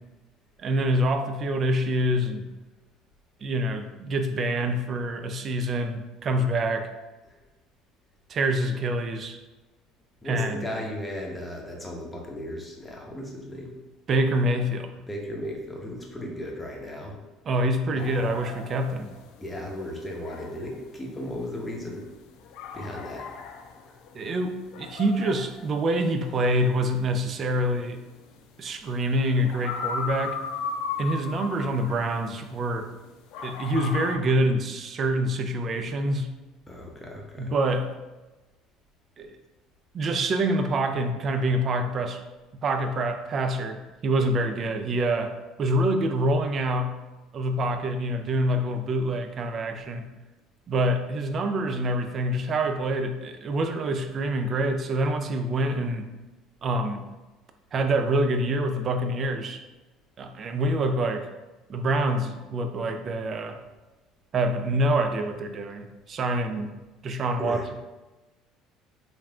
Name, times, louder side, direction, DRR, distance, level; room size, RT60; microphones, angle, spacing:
voice 1, 0.6-2.5 3.4-6.9 8.3-9.4 10.2-10.7 14.1-14.9 17.5-19.1 24.1-28.0 28.6-30.4 31.0-32.9 33.4-36.3 37.4-37.9 39.2-39.4 39.9-42.2 42.6-47.0 47.3-50.1 50.7-56.1 56.6-57.0 57.7-59.6 60.2-61.3 61.7-63.6 64.3-66.7 67.0-67.7, right 1 dB, 45° right, 7 dB, 0.3 m, -26 dB
voice 2, 10.2-13.7 15.1-17.2 17.9-18.2 19.4-22.1 22.7-23.3 23.8-24.0 36.7-37.5 67.4-67.6, left 1 dB, 15° left, -1 dB, 0.8 m, -36 dB
sound 1, 18.0-32.9 33.3-34.2, left 6 dB, 65° left, 0.3 m, -37 dB
3.2 x 2.5 x 2.3 m, 1.1 s
hypercardioid pair, 65°, 0 cm